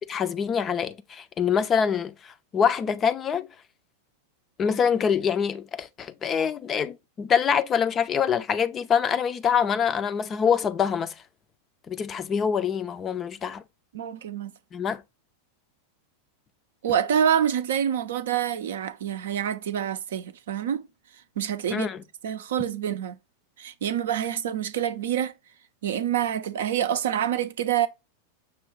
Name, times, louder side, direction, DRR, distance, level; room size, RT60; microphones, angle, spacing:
voice 1, 0.1-3.5 4.6-11.1 11.9-13.6 14.7-15.0 21.7-22.0, left 7 dB, 25° left, 0.4 m, -25 dB
voice 2, 13.9-14.5 16.8-20.9 21.4-21.9 22.2-23.2 23.6-25.3 25.8-27.9, right 9 dB, 60° right, 0.4 m, -26 dB
6.2 x 2.2 x 3.6 m
figure-of-eight pair, 90°, 0 cm